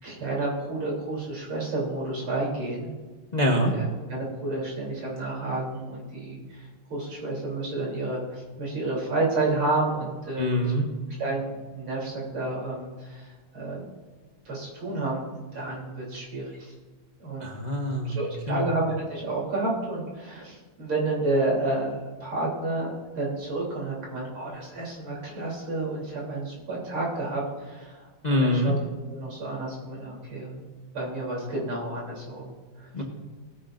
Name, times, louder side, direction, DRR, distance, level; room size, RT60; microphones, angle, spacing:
voice 1, 0.0-2.9 3.5-10.7 11.2-13.9 14.5-15.2 15.5-16.7 17.2-17.5 17.9-30.6 30.9-32.9, right 2 dB, 85° right, -4 dB, 4.2 m, -30 dB
voice 2, 3.3-3.7 10.4-10.9 17.4-18.6 28.2-28.7 32.9-33.0, left 1 dB, 35° left, 0 dB, 0.7 m, -25 dB
19.0 x 9.9 x 2.6 m, 1.4 s
omnidirectional pair, 2.3 m